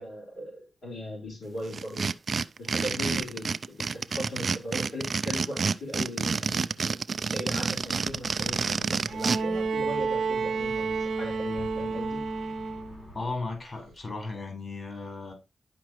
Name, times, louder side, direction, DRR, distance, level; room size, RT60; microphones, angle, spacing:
voice 1, 0.0-2.1 2.6-12.2, left 1 dB, 85° left, 4.7 m, -38 dB
sound 1, 1.7-9.4, right 5 dB, 55° right, 0.4 m, -28 dB
sound 2, 7.8-13.3, left 2 dB, 65° left, 4.3 m, -49 dB
Bowed string instrument, 9.1-13.1 14.4-14.5, right 4 dB, 85° right, 1.0 m, -30 dB
voice 2, 13.1-15.3, left 3 dB, 45° left, 4.5 m, -35 dB
11.5 x 4.9 x 3.1 m
cardioid pair, 70°, 0 cm